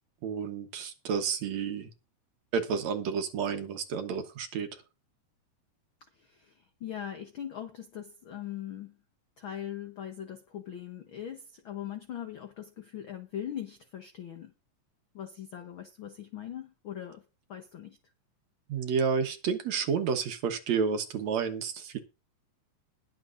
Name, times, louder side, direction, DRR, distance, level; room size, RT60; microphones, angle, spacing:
voice 1, 0.2-1.9 2.5-4.7 18.7-22.0, right 6 dB, 65° right, 2.2 m, -30 dB
voice 2, 6.2-6.5 6.8-9.0 9.4-14.5 15.1-17.2 17.5-18.0, left 10 dB, 75° left, 1.1 m, -40 dB
21.0 x 7.2 x 2.6 m
omnidirectional pair, 3.8 m